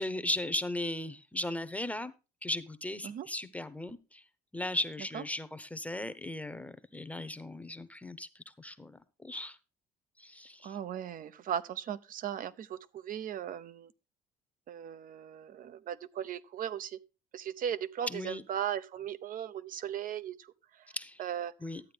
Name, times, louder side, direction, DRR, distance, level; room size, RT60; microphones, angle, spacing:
voice 1, 0.0-2.1 2.4-4.2 4.5-9.6 10.2-10.8 18.1-18.4 20.9-21.2 21.6-21.8, left 1 dB, 10° left, 0.9 m, -37 dB
voice 2, 10.6-13.9 14.7-17.0 17.3-20.5 21.2-21.5, right 9 dB, 55° right, 0.8 m, -37 dB
12.5 x 8.7 x 3.4 m
cardioid pair, 110°, 17 cm